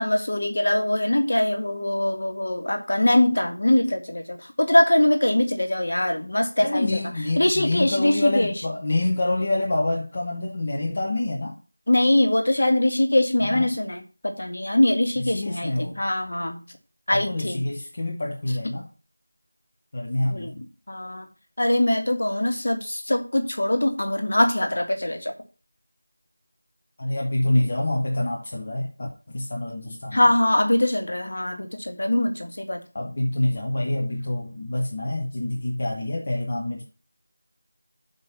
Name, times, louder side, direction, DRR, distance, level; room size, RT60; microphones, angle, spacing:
voice 1, 0.0-7.0 7.4-8.5 11.9-16.6 17.1-17.7 20.3-20.5 20.9-21.3 21.6-25.3 30.1-32.8, left 1 dB, 50° left, 5 dB, 1.7 m, -22 dB
voice 2, 6.6-11.6 13.4-13.7 15.2-16.0 17.1-18.9 19.9-20.6 27.0-30.3 32.9-36.8, left 1 dB, 25° left, -1 dB, 1.0 m, -26 dB
6.0 x 5.3 x 6.7 m, 0.35 s
figure-of-eight pair, 180°, 0 cm